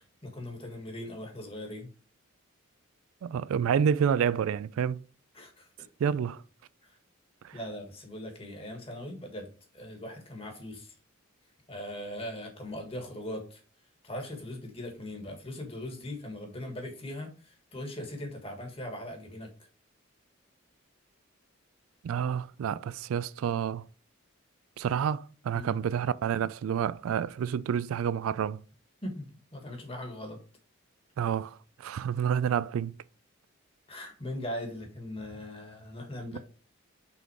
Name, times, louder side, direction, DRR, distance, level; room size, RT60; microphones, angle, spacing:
voice 1, 0.0-1.9 5.3-5.9 6.8-7.0 7.5-10.9 11.7-13.6 14.0-19.5 25.5-25.8 29.0-30.4 33.9-36.4, left 1 dB, 30° left, 1.5 m, -40 dB
voice 2, 3.2-5.0 6.0-6.4 7.4-7.6 22.0-23.9 24.8-28.6 31.2-32.9 36.3-36.4, right 8 dB, 85° right, 0.3 m, -29 dB
5.8 x 3.7 x 4.8 m
head